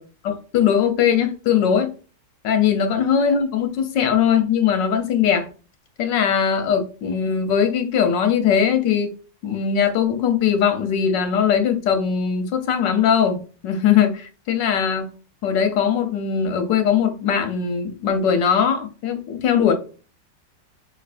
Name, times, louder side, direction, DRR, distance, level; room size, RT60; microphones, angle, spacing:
voice 1, 0.2-1.9 2.4-5.5 6.0-9.1 9.4-15.1 15.4-19.7, left 7 dB, 85° left, 1.6 m, -20 dB
5.4 x 3.2 x 2.5 m
omnidirectional pair, 1.9 m